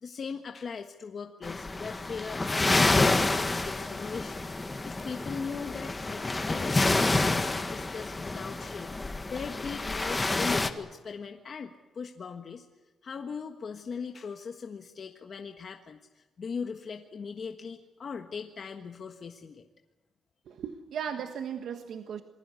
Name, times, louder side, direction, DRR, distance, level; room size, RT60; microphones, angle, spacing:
voice 1, 0.0-12.7 13.0-19.6, left 5 dB, 50° left, 4 dB, 1.5 m, -40 dB
sound 1, 1.4-10.7, left 2 dB, 20° left, 1.6 m, -28 dB
voice 2, 20.5-22.2, right 8 dB, 75° right, 6 dB, 1.5 m, -36 dB
27.5 x 20.5 x 8.3 m, 1.2 s
cardioid pair, 125°, 0 cm